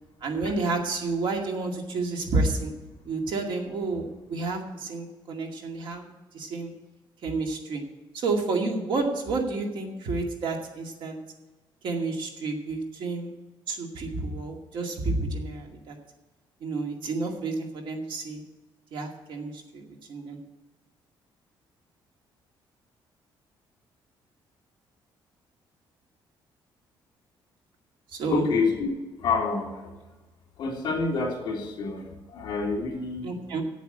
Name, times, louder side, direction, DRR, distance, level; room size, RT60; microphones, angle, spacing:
voice 1, 0.2-2.7 3.1-6.1 6.3-6.7 7.2-7.8 8.1-11.2 11.8-13.3 13.7-15.9 16.6-18.4 18.9-20.4 28.1-28.5 33.2-33.6, right 3 dB, 65° right, 2 dB, 2.2 m, -30 dB
voice 2, 28.3-28.9 29.2-29.9 30.6-33.3, left 4 dB, 55° left, 0 dB, 3.2 m, -28 dB
8.5 x 8.2 x 8.8 m, 1.2 s
cardioid pair, 155°, 9 cm